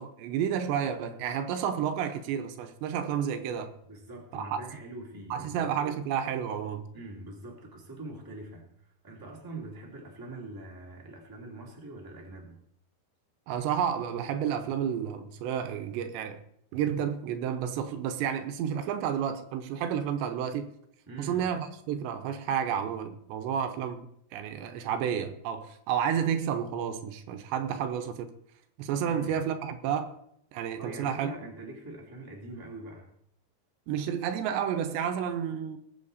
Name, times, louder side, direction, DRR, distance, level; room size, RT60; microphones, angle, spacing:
voice 1, 0.0-3.7 4.3-4.6 5.3-6.8 13.5-16.4 16.7-20.7 21.2-28.3 28.8-30.2 30.5-31.3 33.9-35.8, right 8 dB, 85° right, 3.2 m, -31 dB
voice 2, 3.8-6.1 6.9-8.7 9.0-12.6 21.1-21.5 29.0-29.4 30.8-33.1, right 2 dB, 5° right, 1.9 m, -43 dB
19.5 x 8.2 x 4.2 m
omnidirectional pair, 4.9 m